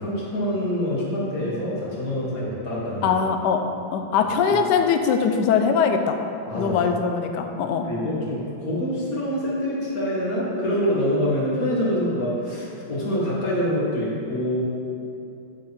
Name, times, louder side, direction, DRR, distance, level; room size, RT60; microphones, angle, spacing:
voice 1, 0.0-3.2 4.5-4.6 6.5-6.8 7.3-7.4 7.8-14.6, equal, 50° left, -6 dB, 2.2 m, -25 dB
voice 2, 3.0-3.6 3.9-6.2 6.5-7.9, left 6 dB, 75° left, 5 dB, 1.2 m, -21 dB
10.5 x 4.8 x 5.3 m, 2.7 s
omnidirectional pair, 2.0 m